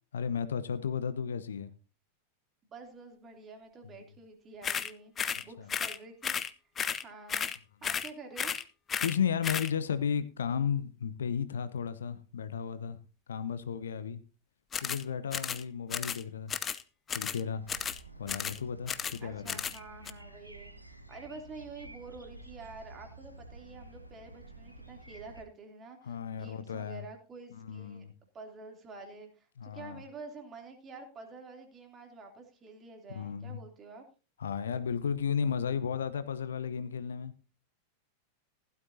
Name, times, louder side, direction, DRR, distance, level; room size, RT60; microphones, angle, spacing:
voice 1, 0.1-1.7 3.8-4.0 5.6-5.7 9.0-13.0 13.3-14.2 14.8-16.5 17.1-17.6 18.2-19.6 26.0-27.1 27.6-28.1 29.6-30.0 33.1-33.6 34.4-37.3, left 7 dB, 65° left, 0.8 m, -34 dB
voice 2, 2.7-6.4 7.0-7.5 7.8-8.6 19.2-28.1 28.3-34.0, right 3 dB, 25° right, 2.9 m, -48 dB
sound 1, 4.6-4.9 5.2-5.4 5.7-6.0 6.2-6.5 6.8-7.0 7.3-7.6 7.8-8.1 8.4-8.6 8.9-9.2 9.4-9.7 14.7-15.0 15.3-15.6 15.9-16.2 16.5-16.8 17.1-17.4 17.7-18.0 18.3-18.6 18.9-19.2 19.5-19.8 20.1-20.2, left 7 dB, 20° left, 0.6 m, -33 dB
sound 2, 17.6-25.4, right 2 dB, 90° right, 1.2 m, -51 dB
16.0 x 12.5 x 2.7 m
figure-of-eight pair, 90°, 0 cm